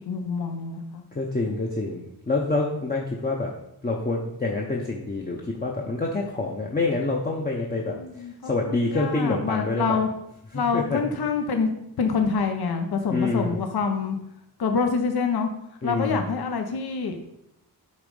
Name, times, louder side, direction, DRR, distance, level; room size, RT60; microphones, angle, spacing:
voice 1, 0.1-1.0 7.9-8.3 8.6-10.1 10.5-11.7 12.0-14.2 14.6-15.5 15.8-17.2, left 5 dB, 65° left, 5 dB, 0.8 m, -26 dB
voice 2, 1.1-3.5 3.8-10.0 10.5-11.0 13.1-13.6 15.8-16.3, left 2 dB, 20° left, -1 dB, 0.7 m, -27 dB
8.4 x 3.7 x 5.3 m, 0.81 s
wide cardioid pair, 160°, 41 cm